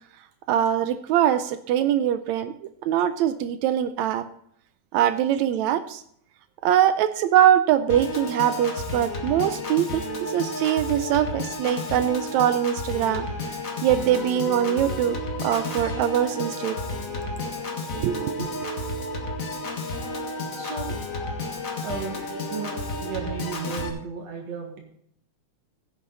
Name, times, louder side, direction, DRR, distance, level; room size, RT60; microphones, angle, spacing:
voice 1, 0.5-2.5 2.8-4.2 4.9-6.0 6.6-13.3 13.8-16.8 18.0-18.5, right 10 dB, 80° right, 12 dB, 1.9 m, -22 dB
Piano / Organ, 7.9-23.9, left 1 dB, 35° left, 1.6 m, -31 dB
voice 2, 20.6-21.0 21.8-22.2 22.5-24.8, right 6 dB, 65° right, 2 dB, 2.7 m, -34 dB
15.5 x 8.6 x 4.0 m, 0.66 s
omnidirectional pair, 3.4 m